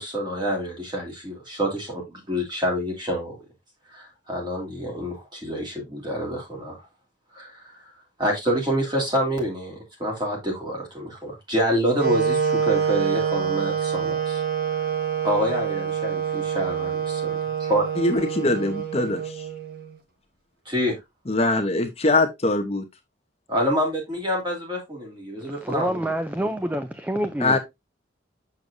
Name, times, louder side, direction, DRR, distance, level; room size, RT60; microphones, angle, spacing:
voice 1, 0.0-3.4 3.9-6.8 7.3-7.8 8.2-14.4 15.2-17.9 20.7-20.9 23.5-26.1, equal, 25° right, 2.7 m, -27 dB
Wind instrument woodwind instrument, 12.0-20.0, right 7 dB, 50° right, 1.2 m, -26 dB
voice 2, 18.0-19.5 21.3-22.9 27.4-27.6, left 2 dB, 30° left, 0.8 m, -22 dB
voice 3, 25.6-27.6, right 1 dB, 10° right, 0.4 m, -27 dB
6.9 x 6.4 x 2.6 m
head